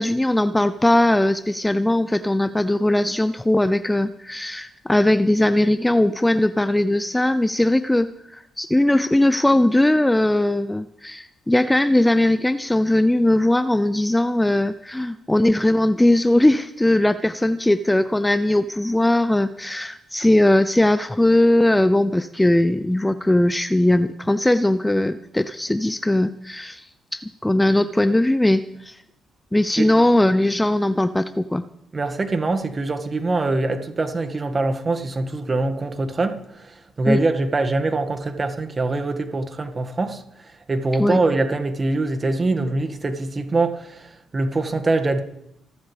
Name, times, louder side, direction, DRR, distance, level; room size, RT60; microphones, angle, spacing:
voice 1, 0.0-26.9 27.1-29.0 29.5-31.6 37.1-37.2 41.0-41.2, left 1 dB, 10° left, 13 dB, 0.7 m, -19 dB
voice 2, 31.9-40.2 40.7-45.2, right 2 dB, 35° right, 8 dB, 2.1 m, -23 dB
29.0 x 12.5 x 3.5 m, 0.75 s
hypercardioid pair, 45°, 0 cm